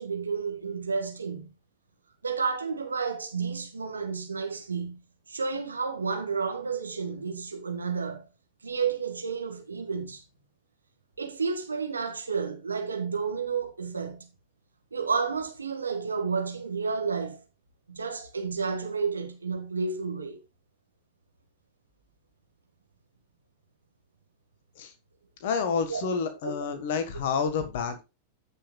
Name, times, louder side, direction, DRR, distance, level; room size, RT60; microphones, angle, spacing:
voice 1, 0.0-1.5 2.2-5.0 5.3-8.3 8.6-10.2 11.2-14.3 14.9-17.4 17.9-20.4 25.9-26.0 26.4-26.8, right 5 dB, 75° right, 1.6 m, -31 dB
voice 2, 25.4-28.0, left 5 dB, 55° left, 1.4 m, -29 dB
16.0 x 5.6 x 2.3 m
figure-of-eight pair, 90°, 0 cm